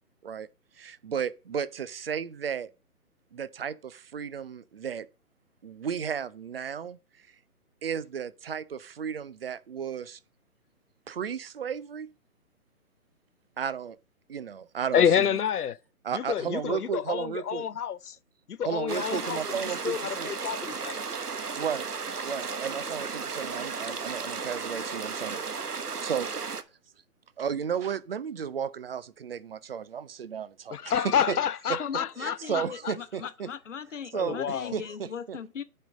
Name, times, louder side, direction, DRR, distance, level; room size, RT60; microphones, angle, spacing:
voice 1, 0.8-2.7 3.3-5.1 5.6-7.0 7.8-10.2 11.1-12.1 13.6-14.0 14.3-15.4 16.0-17.7 18.6-20.3 21.5-21.9 22.2-25.4 26.0-26.4 27.4-31.4 31.7-31.8 32.2-33.5 34.1-35.4, right 7 dB, 40° right, 0.6 m, -34 dB
voice 2, 14.9-15.8 16.1-18.2 18.5-19.4 19.8-21.0 30.7-32.9 34.1-34.7, left 8 dB, 80° left, 0.7 m, -28 dB
sound 1, 18.9-26.6, right 5 dB, 85° right, 1.3 m, -34 dB
voice 3, 31.8-35.6, left 7 dB, 55° left, 1.0 m, -38 dB
9.9 x 5.4 x 5.2 m
figure-of-eight pair, 145°, 45 cm